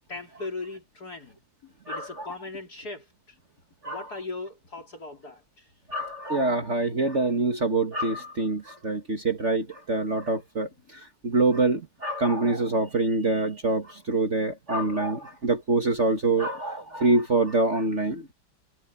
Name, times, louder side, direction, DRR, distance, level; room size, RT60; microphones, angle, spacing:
voice 1, 0.1-3.4 3.9-5.7, left 3 dB, 50° left, 3.9 m, -39 dB
voice 2, 1.9-2.3 3.8-4.1 5.9-18.3, right 2 dB, 40° right, 2.0 m, -25 dB
omnidirectional pair, 2.1 m